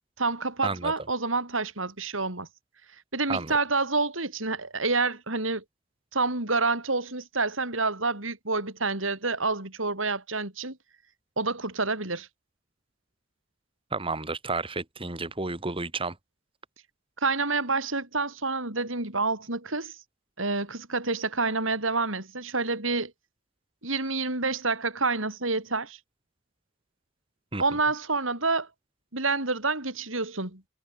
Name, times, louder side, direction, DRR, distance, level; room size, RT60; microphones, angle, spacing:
voice 1, 0.2-2.5 3.1-5.6 6.1-10.8 11.4-12.3 17.2-19.9 20.4-23.1 23.8-26.0 27.6-28.7 29.1-30.6, right 3 dB, 90° right, 7.0 m, -28 dB
voice 2, 13.9-16.1 27.5-27.6, right 3 dB, 30° right, 2.4 m, -31 dB
head